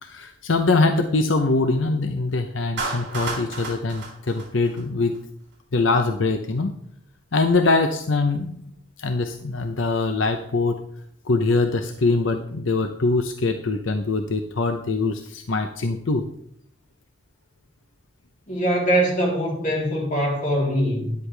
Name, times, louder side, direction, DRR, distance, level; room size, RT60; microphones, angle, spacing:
voice 1, 0.0-5.1 5.7-6.7 7.3-8.6 9.0-10.8 11.3-16.2, left 3 dB, 75° left, 6 dB, 0.8 m, -23 dB
Clapping, 2.8-5.2, right 3 dB, 60° right, 4.3 m, -32 dB
voice 2, 18.5-21.2, equal, 40° left, -3 dB, 3.6 m, -22 dB
13.0 x 10.5 x 3.4 m, 0.70 s
head